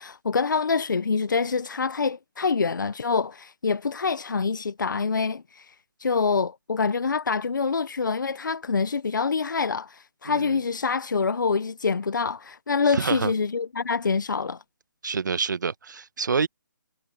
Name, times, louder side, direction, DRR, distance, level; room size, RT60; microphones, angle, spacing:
voice 1, 0.0-5.7 6.0-14.6, left 5 dB, 75° left, 1.1 m, -26 dB
voice 2, 10.2-10.6 12.9-13.3 15.0-16.5, right 5 dB, 70° right, 1.2 m, -27 dB
figure-of-eight pair, 150°, 11 cm